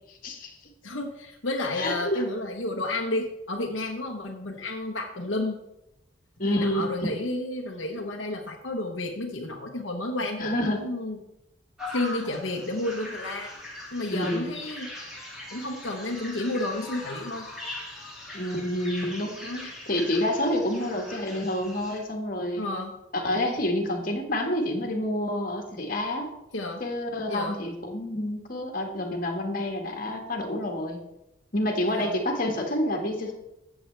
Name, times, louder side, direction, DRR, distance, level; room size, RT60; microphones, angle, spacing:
voice 1, 0.1-0.6 1.8-2.2 6.4-6.8 10.4-10.8 14.1-14.5 18.3-22.7 23.1-26.3 26.8-31.0 31.5-33.3, left 1 dB, 45° left, 2 dB, 1.7 m, -28 dB
voice 2, 0.8-5.6 6.4-11.2 11.9-13.5 13.9-14.9 15.5-17.5 19.4-19.7 22.6-23.0 26.5-26.8 27.3-27.6 31.9-32.2, left 2 dB, 70° left, 0 dB, 1.0 m, -31 dB
sound 1, 11.8-22.0, left 1 dB, 5° right, 3.1 m, -41 dB
14.0 x 7.8 x 3.3 m, 0.89 s
head